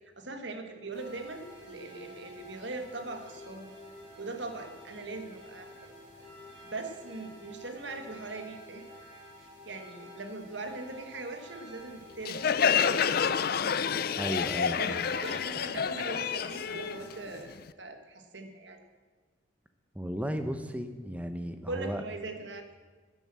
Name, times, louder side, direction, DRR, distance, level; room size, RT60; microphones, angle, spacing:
voice 1, 0.2-3.7 4.2-5.7 6.6-8.9 9.4-12.7 14.8-18.8 21.7-22.8, right 3 dB, 65° right, 6 dB, 1.5 m, -41 dB
sound 1, 0.9-17.4, left 1 dB, 45° right, 4.7 m, -50 dB
Crowd, 12.3-17.7, left 7 dB, 50° left, 0.4 m, -28 dB
voice 2, 14.2-15.0 19.9-22.0, equal, 5° right, 8 dB, 0.8 m, -35 dB
10.5 x 10.5 x 7.5 m, 1.4 s
head